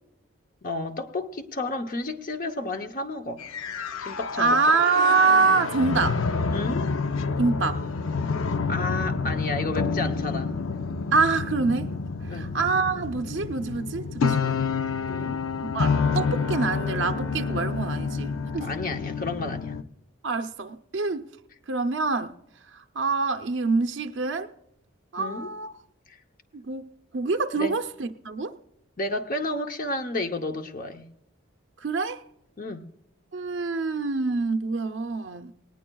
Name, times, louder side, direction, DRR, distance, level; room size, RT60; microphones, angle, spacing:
voice 1, 0.6-3.4 4.0-4.6 6.5-6.9 8.7-10.5 12.3-12.5 15.1-15.4 18.6-19.8 25.2-25.5 26.1-26.2 27.6-27.8 29.0-31.1 32.6-32.8, left 2 dB, 40° left, 0.8 m, -31 dB
sound 1, 3.4-19.8, left 5 dB, 85° left, 0.6 m, -28 dB
voice 2, 4.4-6.2 7.4-7.8 11.1-11.9 12.3-14.6 15.2-15.3 15.6-18.7 20.2-21.2 21.7-22.3 22.7-24.5 25.1-25.7 26.5-28.6 31.8-32.2 33.3-35.5, right 4 dB, 60° right, 0.6 m, -25 dB
19.0 x 18.5 x 2.3 m
head